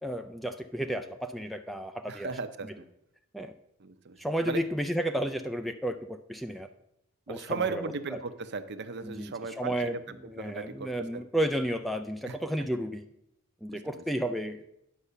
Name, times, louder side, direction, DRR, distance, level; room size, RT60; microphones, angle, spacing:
voice 1, 0.0-2.3 2.6-2.8 3.3-3.5 4.2-6.7 7.3-7.8 8.1-8.2 9.0-13.1 13.6-14.6, equal, ahead, 7 dB, 0.3 m, -32 dB
voice 2, 2.1-2.9 3.8-4.2 4.4-4.6 7.3-11.2 12.3-12.4 13.7-14.0, right 4 dB, 50° right, 10 dB, 0.7 m, -36 dB
9.9 x 5.5 x 6.7 m, 0.81 s
head